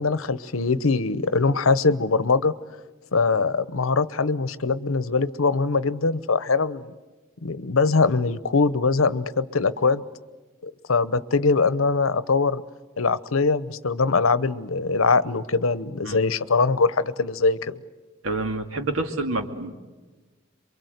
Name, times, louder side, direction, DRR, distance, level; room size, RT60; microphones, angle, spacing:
voice 1, 0.0-2.5 3.1-6.9 7.4-10.0 10.6-12.6 13.0-17.8, left 4 dB, 80° left, 16 dB, 0.9 m, -22 dB
voice 2, 18.2-19.7, right 2 dB, 90° right, 5 dB, 2.4 m, -28 dB
27.5 x 23.5 x 8.1 m, 1.3 s
head